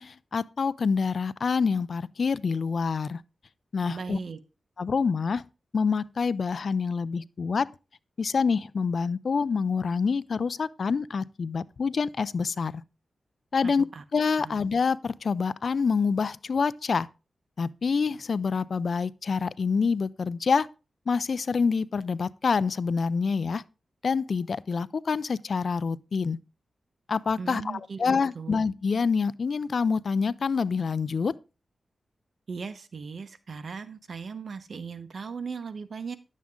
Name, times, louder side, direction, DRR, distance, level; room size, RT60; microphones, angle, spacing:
voice 1, 0.0-3.2 3.7-4.2 4.8-5.4 5.7-7.7 8.2-12.8 13.5-13.8 14.1-17.1 17.6-20.7 21.1-23.6 24.0-26.4 27.1-31.4, left 5 dB, 60° left, 0.4 m, -26 dB
voice 2, 3.9-4.4 13.6-14.0 14.4-14.6 27.4-28.6 32.5-36.2, right 5 dB, 65° right, 0.9 m, -38 dB
10.5 x 7.4 x 3.6 m
cardioid pair, 70°, 0 cm